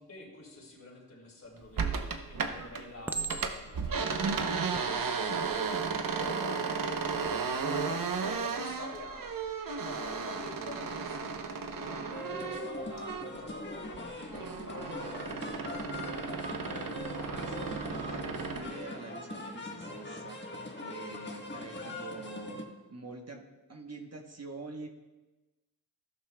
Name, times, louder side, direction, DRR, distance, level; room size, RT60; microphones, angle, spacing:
voice 1, 0.0-5.8 6.2-6.6 7.6-9.3 9.7-16.2 21.5-22.0, left 2 dB, 45° left, -2 dB, 3.2 m, -48 dB
Chink clink, 1.6-2.1 3.1-3.9 4.6-4.9, right 3 dB, 5° right, 0.4 m, -37 dB
sound 1, 1.8-2.8 3.1-13.5 13.8-18.7, right 5 dB, 65° right, 0.9 m, -34 dB
sound 2, 12.1-22.6, left 2 dB, 30° left, 1.4 m, -42 dB
voice 2, 17.1-20.4 20.8-22.6 22.9-23.4 23.7-24.9, right 2 dB, 45° right, 2 dB, 1.2 m, -45 dB
13.0 x 11.5 x 2.3 m, 1.1 s
cardioid pair, 55°, 36 cm